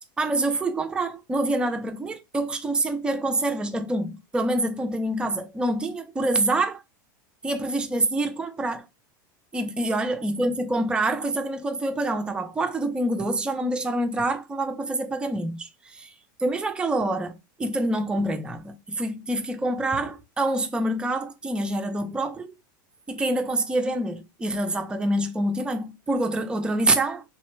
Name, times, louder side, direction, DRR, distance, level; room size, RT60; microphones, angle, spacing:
voice 1, 0.2-6.8 7.4-8.8 9.5-16.1 16.4-22.5 23.1-27.2, right 2 dB, 10° right, 0.4 m, -26 dB
3.1 x 2.1 x 3.1 m
supercardioid pair, 120°, 11 cm